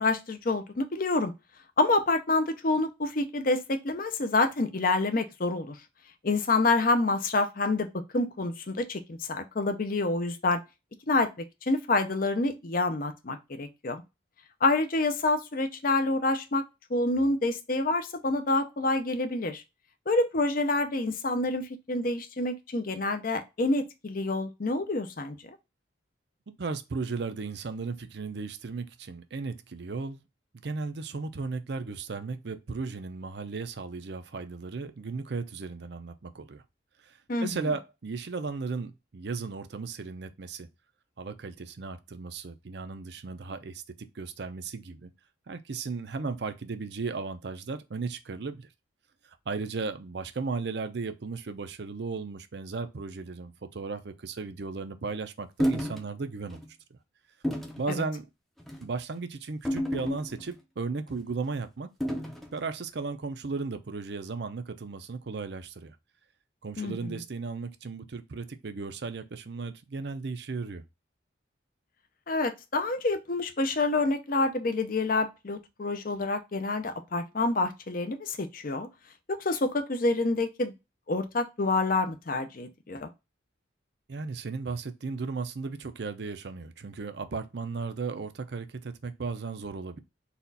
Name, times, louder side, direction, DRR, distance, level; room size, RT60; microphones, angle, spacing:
voice 1, 0.0-1.3 1.8-5.8 6.2-7.9 8.1-10.6 11.1-11.3 11.6-14.0 14.6-16.6 16.9-19.6 20.1-25.4 37.3-37.5 57.9-58.0 66.8-67.2 72.3-78.9 79.3-80.7 81.1-83.1, left 2 dB, 45° left, 0.6 m, -27 dB
voice 2, 26.6-30.2 30.6-36.6 37.0-40.7 41.2-43.8 44.1-45.1 45.5-48.7 49.3-56.6 56.9-57.0 57.8-58.3 58.8-61.9 62.5-66.0 66.6-70.8 84.1-90.0, right 4 dB, 60° right, 0.5 m, -35 dB
sound 1, 55.6-56.0 56.5-56.7 57.4-57.8 58.6-58.9 59.7-60.6 62.0-62.5, equal, ahead, 0.6 m, -30 dB
4.2 x 2.4 x 3.9 m
head